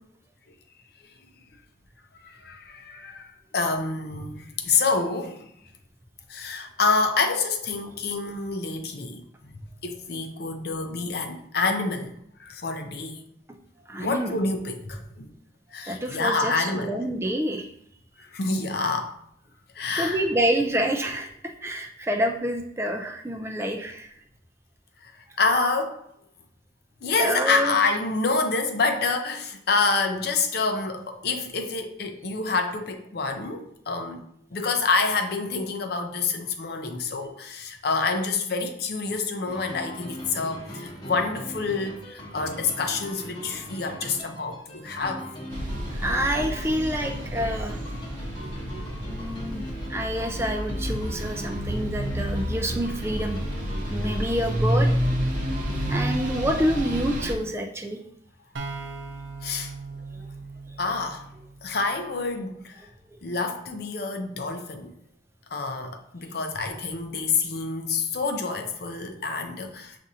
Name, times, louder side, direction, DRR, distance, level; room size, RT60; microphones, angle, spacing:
voice 1, 2.2-5.5 6.3-9.2 9.5-12.1 12.4-13.2 14.0-15.3 15.7-17.0 18.2-19.1 19.7-20.2 25.0-26.0 27.0-45.2 51.0-51.1 59.4-59.7 60.8-61.3 61.6-62.9 63.2-64.9 65.5-70.0, left 4 dB, 55° left, 0.6 m, -27 dB
voice 2, 13.9-14.3 15.9-17.7 19.9-21.3 21.6-24.1 27.2-27.8 46.0-47.8 49.1-49.6 49.9-53.4 53.9-54.9 55.9-58.0, equal, 15° right, 0.3 m, -27 dB
sound 1, 39.5-56.1, equal, 25° left, 0.8 m, -39 dB
sound 2, 45.5-57.4, equal, 45° right, 0.7 m, -29 dB
sound 3, 58.6-62.2, right 4 dB, 80° right, 0.6 m, -39 dB
7.2 x 2.5 x 2.7 m
head